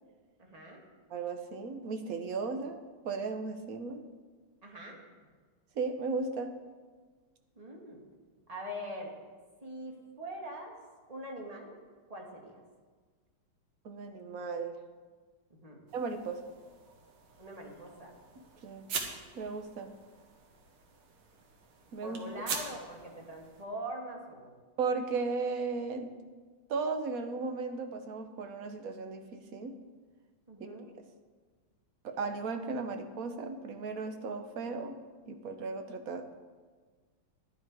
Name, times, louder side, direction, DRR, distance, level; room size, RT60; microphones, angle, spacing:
voice 1, 0.4-0.8 4.6-5.0 7.6-8.0 8.5-9.1 9.6-10.8 11.1-11.8 12.1-12.6 15.5-15.8 17.4-18.1 22.0-24.5 30.5-30.9, equal, 20° right, -1 dB, 1.8 m, -43 dB
voice 2, 1.1-4.0 5.8-6.5 13.8-14.8 15.9-16.4 18.6-18.9 19.3-19.9 21.9-22.2 24.8-26.1 26.7-29.8 32.0-35.0 35.3-36.3, right 4 dB, 55° right, 6 dB, 1.1 m, -36 dB
sound 1, 15.9-23.7, right 5 dB, 85° right, 2.1 m, -44 dB
11.0 x 11.0 x 4.8 m, 1.5 s
omnidirectional pair, 2.2 m